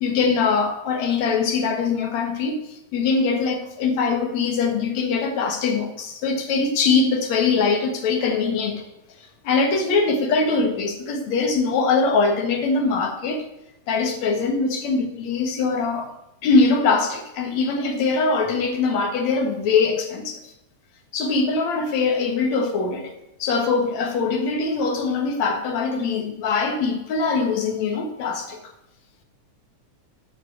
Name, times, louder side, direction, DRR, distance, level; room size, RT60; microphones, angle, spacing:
voice 1, 0.0-8.8 9.4-13.5 13.9-16.1 16.4-20.5 21.1-23.1 23.4-28.6, left 4 dB, 65° left, 2.5 m, -22 dB
8.7 x 5.8 x 8.1 m
omnidirectional pair, 3.6 m